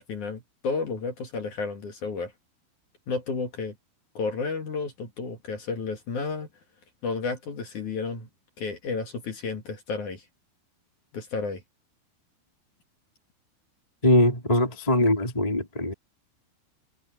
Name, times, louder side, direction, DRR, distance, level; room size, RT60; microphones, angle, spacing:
voice 1, 0.0-2.3 3.1-3.7 4.1-6.5 7.0-8.3 8.6-10.2 11.1-11.6, left 4 dB, 50° left, 2.7 m, -32 dB
voice 2, 14.0-15.9, left 1 dB, 10° left, 3.3 m, -22 dB
omnidirectional pair, 6.0 m